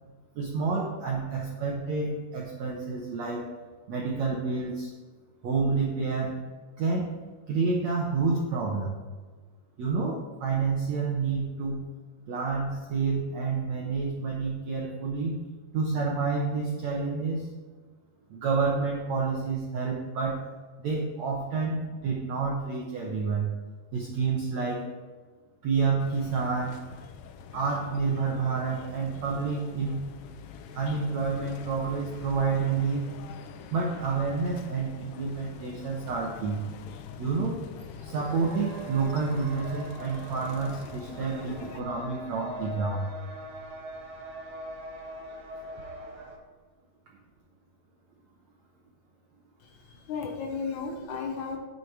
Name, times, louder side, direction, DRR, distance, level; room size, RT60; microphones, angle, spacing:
voice 1, 0.3-3.5 3.9-4.9 5.4-6.4 6.8-7.2 7.5-9.0 9.8-11.9 12.3-15.4 15.7-17.5 18.3-20.4 20.8-23.5 23.9-24.9 25.6-26.8 27.5-30.1 30.7-33.1 33.7-36.6 37.2-37.6 38.0-43.1, right 4 dB, 80° right, -1 dB, 1.5 m, -29 dB
sound 1, 26.0-41.8, left 7 dB, 80° left, 2.2 m, -45 dB
sound 2, 37.8-46.4, right 1 dB, 55° right, 1.9 m, -42 dB
voice 2, 49.6-51.6, left 5 dB, 65° left, 2 dB, 2.1 m, -34 dB
9.4 x 7.0 x 4.7 m, 1.4 s
omnidirectional pair, 4.7 m